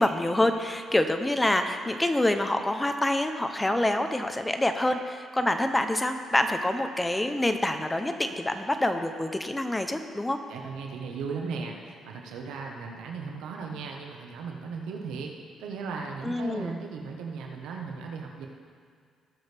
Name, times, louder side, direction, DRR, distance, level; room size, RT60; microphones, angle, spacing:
voice 1, 0.0-10.4 16.2-16.7, left 1 dB, 15° left, 7 dB, 0.8 m, -26 dB
voice 2, 10.5-15.3 15.6-18.5, right 5 dB, 90° right, 1 dB, 1.3 m, -37 dB
18.5 x 6.3 x 3.5 m, 2.1 s
cardioid pair, 90°, 0 cm